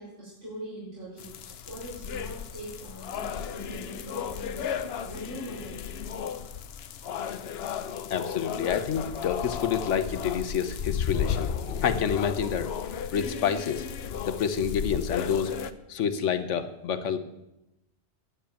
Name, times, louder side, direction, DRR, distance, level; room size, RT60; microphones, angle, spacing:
voice 1, 0.0-5.8, right 1 dB, 90° right, -10 dB, 4.9 m, -42 dB
sound 1, 1.2-15.7, left 8 dB, 65° left, 0.8 m, -34 dB
voice 2, 8.1-11.5 11.8-13.9 14.3-15.5 15.9-17.2, left 7 dB, 85° left, 10 dB, 1.2 m, -28 dB
9.9 x 7.0 x 8.7 m, 0.90 s
omnidirectional pair, 1.2 m